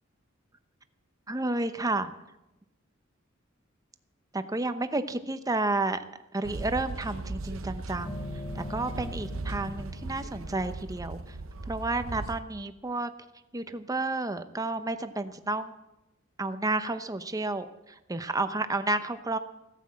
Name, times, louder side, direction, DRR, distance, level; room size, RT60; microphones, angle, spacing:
voice 1, 1.3-2.1 4.3-6.0 6.3-8.3 8.5-11.4 11.7-13.1 13.5-15.7 16.4-19.4, right 2 dB, 15° right, 10 dB, 0.8 m, -31 dB
sound 1, 6.4-12.4, right 3 dB, 75° right, 0.8 m, -38 dB
sound 2, 8.0-11.6, left 2 dB, 25° left, 0.8 m, -43 dB
16.5 x 9.7 x 7.5 m, 0.96 s
head